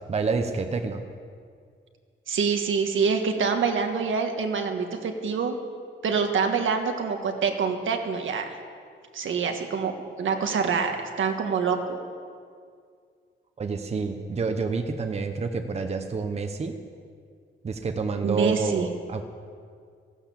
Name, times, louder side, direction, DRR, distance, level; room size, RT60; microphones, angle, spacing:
voice 1, 0.1-1.0 13.6-16.8 17.6-19.2, right 4 dB, 30° right, 6 dB, 0.8 m, -28 dB
voice 2, 2.3-5.6 6.0-8.5 9.1-9.9 10.2-12.0 18.2-18.9, right 5 dB, 75° right, 4 dB, 1.5 m, -26 dB
15.5 x 11.5 x 7.0 m, 2.1 s
wide cardioid pair, 165°, 21 cm